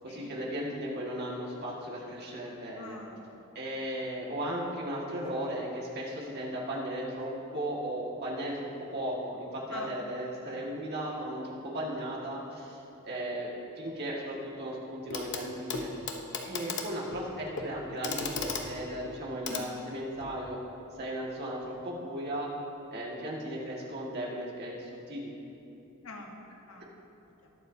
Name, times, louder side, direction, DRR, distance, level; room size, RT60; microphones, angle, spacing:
voice 1, 0.0-3.0 3.6-13.5 13.8-15.9 16.4-20.6 21.0-22.5 22.9-25.3, right 1 dB, 50° right, -4 dB, 1.9 m, -36 dB
voice 2, 2.8-3.8 9.7-9.9 10.5-10.6 13.1-13.2 19.5-19.6 26.0-26.3 26.7-26.9 27.1-27.5, left 2 dB, 85° left, 1 dB, 1.3 m, -46 dB
Clock, 15.1-15.4 15.7-20.4 21.6-21.7, left 4 dB, 60° left, 0.9 m, -37 dB
20.0 x 7.3 x 2.8 m, 2.9 s
head